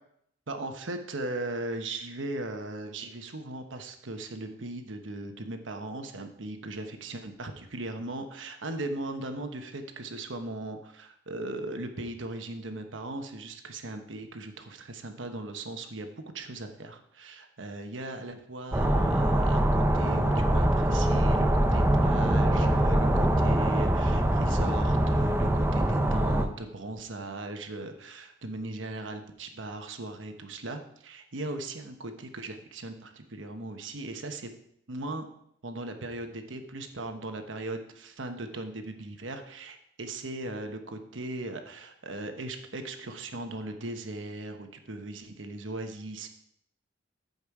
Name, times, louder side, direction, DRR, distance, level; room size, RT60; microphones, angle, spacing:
voice 1, 0.5-34.5 34.9-35.3 35.6-46.3, right 2 dB, 75° right, 6 dB, 1.1 m, -38 dB
sound 1, 18.7-26.5, right 1 dB, 10° right, 0.7 m, -23 dB
14.0 x 5.4 x 4.8 m, 0.73 s
head